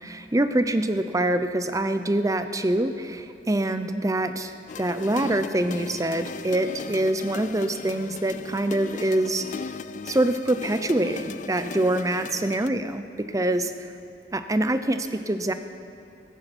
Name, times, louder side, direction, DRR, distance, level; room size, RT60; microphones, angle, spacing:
voice 1, 0.0-9.7 10.1-13.7 14.3-15.5, right 1 dB, 15° right, 10 dB, 0.6 m, -25 dB
sound 1, 4.7-12.7, left 5 dB, 40° left, 0.3 m, -38 dB
16.0 x 14.5 x 6.1 m, 2.6 s
head